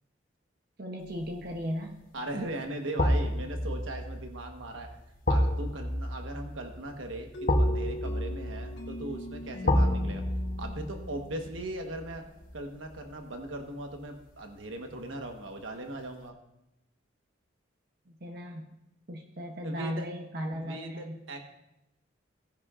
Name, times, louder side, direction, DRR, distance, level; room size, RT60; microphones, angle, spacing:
voice 1, 0.8-2.0 18.2-18.7 19.1-21.2, equal, 50° right, 2 dB, 0.8 m, -36 dB
sound 1, 1.2-1.6 3.0-14.0 14.3-14.4, left 1 dB, 45° left, 1.0 m, -30 dB
voice 2, 2.1-4.9 5.3-10.2 10.6-12.2 12.5-16.4 19.6-20.1 20.5-21.4, right 1 dB, 85° right, 4 dB, 1.2 m, -39 dB
sound 2, 7.3-12.0, left 1 dB, 60° left, 1.4 m, -39 dB
17.5 x 10.5 x 2.5 m, 0.90 s
head